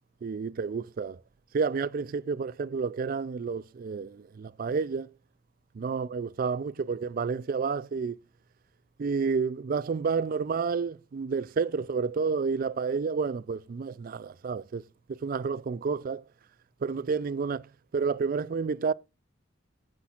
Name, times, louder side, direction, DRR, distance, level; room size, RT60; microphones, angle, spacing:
voice 1, 0.2-1.2 1.5-5.1 5.7-8.2 9.0-14.8 15.1-16.2 16.8-17.6 17.9-18.9, right 5 dB, 50° right, 0.3 m, -30 dB
14.0 x 5.9 x 2.4 m
head